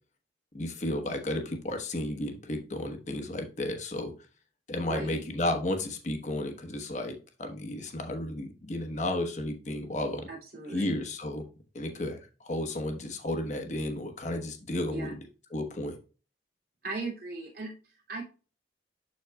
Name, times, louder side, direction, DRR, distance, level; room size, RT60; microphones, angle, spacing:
voice 1, 0.5-4.1 4.7-7.1 7.4-10.3 10.7-11.5 11.7-15.2 15.5-15.9, left 1 dB, 40° left, 4 dB, 1.1 m, -33 dB
voice 2, 4.8-5.2 10.3-11.0 14.9-15.1 16.8-18.2, right 3 dB, 55° right, -3 dB, 2.6 m, -38 dB
11.5 x 4.1 x 2.2 m, 0.35 s
head